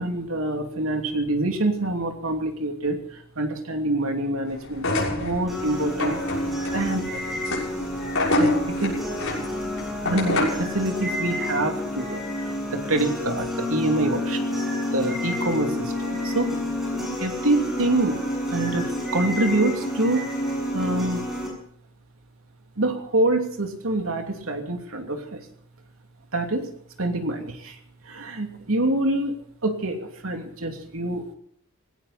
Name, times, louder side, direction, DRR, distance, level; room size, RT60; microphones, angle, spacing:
voice 1, 0.0-7.2 8.4-9.0 10.0-14.6 14.9-16.5 17.2-20.3 20.7-21.3 22.8-25.4 26.3-26.7 27.0-27.8 28.0-31.3, right 2 dB, 75° right, 4 dB, 2.9 m, -26 dB
sound 1, 4.7-10.7, left 2 dB, 65° left, 6.9 m, -27 dB
sound 2, 5.5-21.5, left 1 dB, ahead, 7.2 m, -29 dB
19.0 x 17.0 x 4.3 m, 0.66 s
head